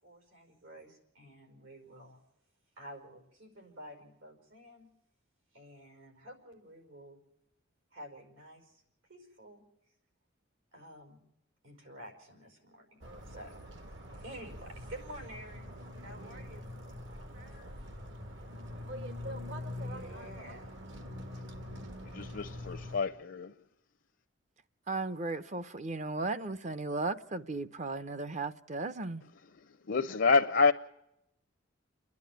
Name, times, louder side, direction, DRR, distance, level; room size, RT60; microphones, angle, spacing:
voice 1, 0.0-2.2 2.8-4.9 5.5-7.2 7.9-8.8 9.1-9.6 10.7-11.2 11.6-13.5 14.1-15.7 16.0-16.6 17.0-17.7 19.7-20.8, right 1 dB, 80° right, 5.4 m, -50 dB
sound 1, 13.0-23.0, left 1 dB, 65° right, 1.8 m, -44 dB
voice 2, 22.1-23.5 29.9-30.7, left 4 dB, 60° left, 0.7 m, -27 dB
voice 3, 24.9-29.2, right 3 dB, 35° right, 0.7 m, -36 dB
29.5 x 11.0 x 9.3 m
head